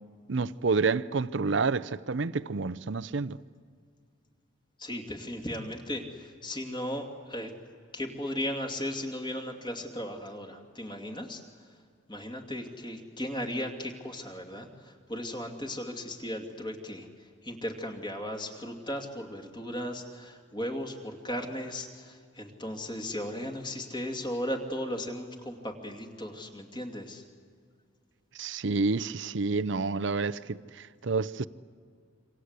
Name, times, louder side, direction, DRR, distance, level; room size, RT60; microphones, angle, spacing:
voice 1, 0.3-3.4 28.3-31.5, right 4 dB, 60° right, 0.6 m, -29 dB
voice 2, 4.8-7.5 7.9-11.4 12.1-17.1 17.4-27.2, left 1 dB, 20° left, 2.6 m, -36 dB
27.5 x 25.5 x 8.2 m
head